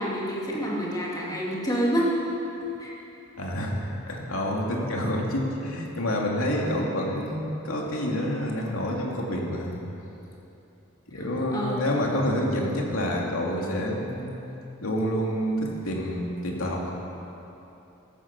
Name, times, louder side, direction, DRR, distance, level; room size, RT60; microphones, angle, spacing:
voice 1, 0.0-2.2 2.8-2.9 11.1-11.8, equal, 20° left, -4 dB, 2.6 m, -28 dB
voice 2, 3.4-3.8 4.1-9.8 11.1-14.3 14.8-16.9, equal, 90° left, -2 dB, 2.6 m, -28 dB
14.0 x 11.5 x 7.3 m, 2.9 s
head